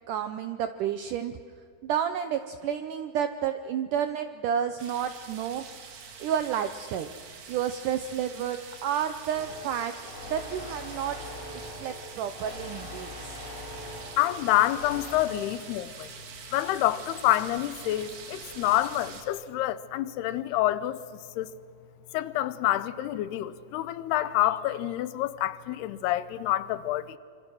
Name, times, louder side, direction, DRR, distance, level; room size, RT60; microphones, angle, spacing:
voice 1, 0.1-1.4 1.8-5.6 6.2-7.1 7.5-9.9 10.2-11.2 11.5-13.3, right 9 dB, 80° right, 1.8 m, -30 dB
sound 1, 4.8-19.2, right 6 dB, 65° right, 4.0 m, -45 dB
sound 2, 9.3-15.2, left 2 dB, 40° left, 4.8 m, -42 dB
voice 2, 14.2-16.1 16.5-21.0 21.4-21.5 22.1-27.2, left 14 dB, 80° left, 2.8 m, -27 dB
26.5 x 25.5 x 6.3 m
omnidirectional pair, 4.6 m